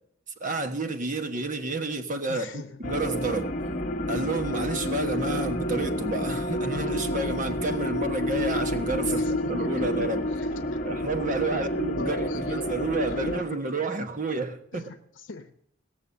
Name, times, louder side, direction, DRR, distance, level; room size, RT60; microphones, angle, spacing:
voice 1, 0.4-3.5 4.1-10.2 10.8-14.9, right 2 dB, 45° right, 7 dB, 1.3 m, -30 dB
voice 2, 2.3-2.8 9.1-10.8 11.5-12.8 13.1-13.8 14.7-15.5, left 3 dB, 70° left, 5 dB, 0.9 m, -40 dB
sound 1, 2.8-13.4, left 1 dB, 45° left, 1.1 m, -29 dB
17.0 x 7.0 x 7.0 m, 0.69 s
head